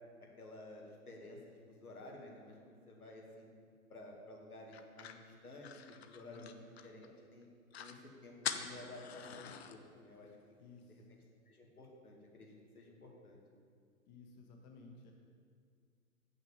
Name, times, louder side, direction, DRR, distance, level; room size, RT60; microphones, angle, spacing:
voice 1, 0.4-3.5 3.9-5.7 6.1-6.6 6.8-7.5 7.8-10.3 10.9-11.0 11.5-13.4, left 2 dB, 80° left, -1 dB, 1.9 m, -53 dB
sound 1, 4.7-7.1 7.4-7.5 7.7-8.0 8.4-9.8, left 8 dB, 45° left, 0.6 m, -44 dB
voice 2, 10.6-11.0 14.1-15.1, left 4 dB, 30° left, 1 dB, 1.0 m, -56 dB
7.2 x 6.2 x 7.1 m, 2.1 s
figure-of-eight pair, 115°, 44 cm